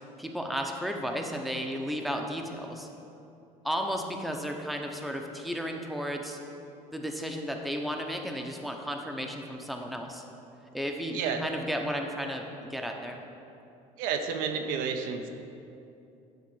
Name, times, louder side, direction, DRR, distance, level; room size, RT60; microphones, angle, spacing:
voice 1, 0.2-2.9 3.6-6.4 6.9-10.2 10.7-13.2, equal, ahead, 2 dB, 0.7 m, -33 dB
voice 2, 11.1-11.5 14.0-15.3, right 6 dB, 85° right, 5 dB, 0.7 m, -31 dB
10.5 x 3.7 x 6.2 m, 2.7 s
cardioid pair, 115°, 14 cm